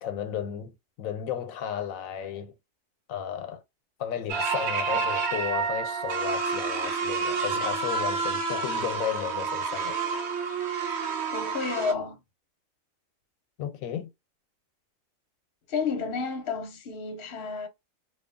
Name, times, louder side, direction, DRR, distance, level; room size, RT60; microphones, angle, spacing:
voice 1, 0.0-2.5 3.1-3.6 4.0-10.0 13.6-14.1, left 9 dB, 90° left, 1.0 m, -34 dB
sound 1, 4.3-11.9, right 4 dB, 60° right, 0.9 m, -29 dB
voice 2, 11.3-12.2 15.7-17.7, left 5 dB, 55° left, 0.8 m, -31 dB
2.8 x 2.2 x 2.5 m
omnidirectional pair, 1.4 m